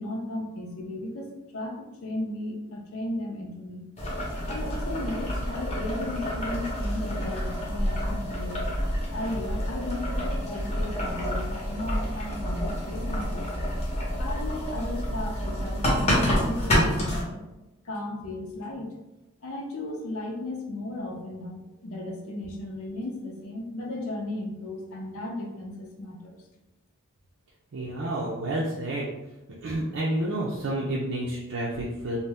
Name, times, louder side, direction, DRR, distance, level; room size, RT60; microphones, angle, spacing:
voice 1, 0.0-3.8 4.5-8.7 9.1-13.6 14.2-17.4 17.8-19.0 19.4-26.4, left 1 dB, 75° left, 1 dB, 0.6 m, -35 dB
Boiling, 4.0-17.2, equal, 30° left, 0.7 m, -28 dB
voice 2, 27.7-29.1 29.6-32.2, right 1 dB, 65° right, -5 dB, 0.5 m, -29 dB
2.7 x 2.1 x 3.3 m, 0.99 s
head